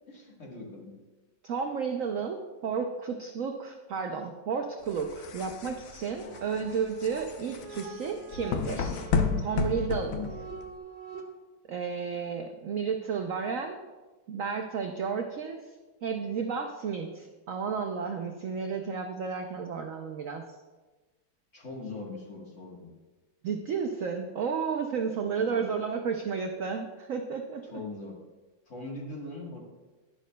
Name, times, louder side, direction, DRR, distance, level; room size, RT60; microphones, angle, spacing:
voice 1, 0.1-0.9 6.2-6.6 10.1-10.3 21.5-22.9 25.3-25.7 27.6-28.2 28.7-29.6, left 3 dB, 40° left, -1 dB, 1.6 m, -41 dB
voice 2, 1.4-9.0 9.4-10.1 11.7-13.8 14.3-15.6 16.0-20.4 23.4-27.6, right 6 dB, 80° right, 4 dB, 0.7 m, -32 dB
sound 1, 4.9-10.8, left 5 dB, 70° left, 0.8 m, -32 dB
sound 2, 5.9-11.2, right 4 dB, 60° right, 1.5 m, -44 dB
11.5 x 10.5 x 2.2 m, 1.2 s
omnidirectional pair, 2.1 m